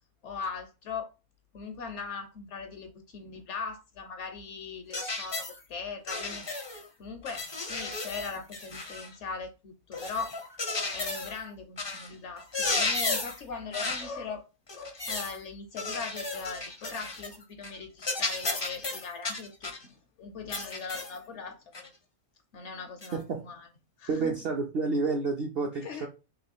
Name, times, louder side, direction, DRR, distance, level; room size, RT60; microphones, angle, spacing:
voice 1, 0.2-1.1 1.5-6.4 7.0-10.3 10.9-14.5 14.7-21.9 22.5-23.7 24.0-24.4 25.8-26.1, left 5 dB, 65° left, 0.8 m, -40 dB
sound 1, 4.9-5.6 6.1-6.8 7.3-9.1 9.9-11.4 11.8-12.1 12.4-13.4 13.7-14.1 14.7-15.4 15.8-17.4 17.6-17.8 18.0-19.8 20.5-21.2 21.7-21.9 23.0-23.1, left 3 dB, 35° left, 0.4 m, -33 dB
voice 2, 23.1-23.4 24.1-26.1, right 3 dB, 60° right, 0.6 m, -29 dB
3.0 x 2.9 x 4.1 m
omnidirectional pair, 1.6 m